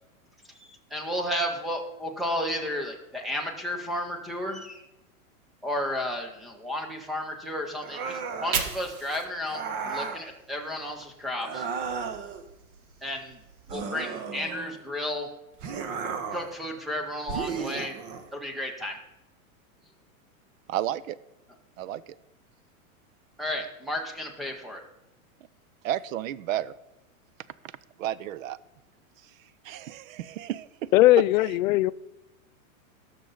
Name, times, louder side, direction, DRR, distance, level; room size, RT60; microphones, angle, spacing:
voice 1, 0.9-4.8 5.6-11.7 13.0-13.4 13.7-15.3 16.3-18.0 18.3-19.0 23.4-24.8, left 1 dB, ahead, 0.4 m, -32 dB
sound 1, 7.8-8.7 9.5-10.2 11.4-12.4 13.7-14.8 15.6-16.5 17.3-18.3, right 5 dB, 30° right, 0.8 m, -34 dB
Fire, 8.1-11.3 11.7-13.7, right 6 dB, 85° right, 1.8 m, -38 dB
voice 2, 20.7-21.2 21.8-22.0 25.8-26.7 28.0-28.6 29.6-30.7, right 12 dB, 70° right, 0.7 m, -31 dB
voice 3, 30.9-31.9, left 16 dB, 70° left, 0.5 m, -19 dB
18.0 x 6.7 x 3.9 m
supercardioid pair, 160°, 42 cm